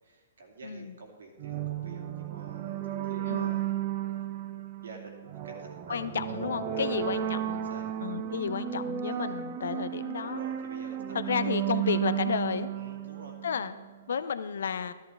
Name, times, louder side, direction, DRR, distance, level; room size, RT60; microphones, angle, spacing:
voice 1, 0.0-3.8 4.1-4.2 4.8-7.8 8.2-8.3 9.0-9.5 10.2-11.0 12.7-13.4, right 3 dB, 75° right, 1 dB, 2.4 m, -48 dB
voice 2, 0.6-0.9 3.3-3.6 5.9-7.6 8.0-10.4 11.1-12.7 13.4-13.7 14.1-14.9, left 7 dB, 70° left, 12 dB, 0.6 m, -32 dB
sound 1, 1.4-13.9, right 11 dB, 40° right, 0.9 m, -34 dB
13.5 x 11.0 x 3.5 m, 1.4 s
hypercardioid pair, 125°, 0 cm